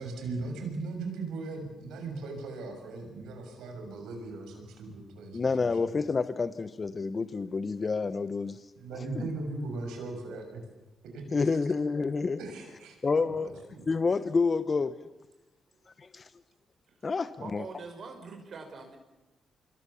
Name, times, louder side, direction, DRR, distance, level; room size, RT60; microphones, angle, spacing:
voice 1, 0.0-5.9 8.8-10.6 11.1-11.5 12.4-13.9, right 3 dB, 85° right, 4 dB, 6.7 m, -38 dB
voice 2, 5.3-8.7 9.0-9.3 11.3-12.4 13.0-13.5 13.9-14.9 16.0-16.3 17.0-17.6, left 4 dB, 40° left, 12 dB, 1.1 m, -29 dB
voice 3, 17.4-19.0, right 4 dB, 60° right, 5 dB, 5.8 m, -44 dB
26.5 x 22.5 x 7.3 m, 1.0 s
supercardioid pair, 60°, 0 cm